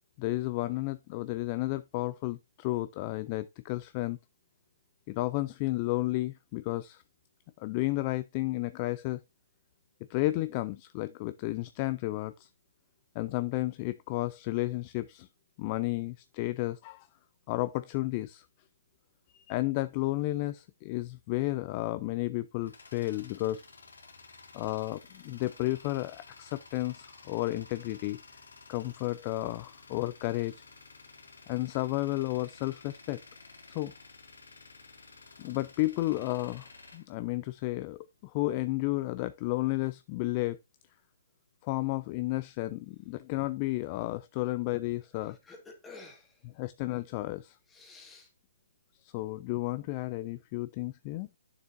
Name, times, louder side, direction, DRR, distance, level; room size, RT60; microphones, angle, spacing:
voice 1, 0.2-4.2 5.1-7.0 7.6-9.2 10.1-12.5 13.2-15.3 15.6-17.1 17.5-18.5 19.3-23.6 24.5-28.2 28.7-30.5 31.5-33.2 33.7-33.9 35.4-40.6 41.6-45.4 46.6-47.6 49.0-51.3, left 18 dB, 30° left, 0.3 m, -32 dB
Tools, 22.3-38.0, left 3 dB, 90° left, 2.6 m, -53 dB
voice 2, 45.2-46.4 47.7-48.3, left 3 dB, 10° left, 1.7 m, -51 dB
8.6 x 6.8 x 2.5 m
hypercardioid pair, 155°, 0 cm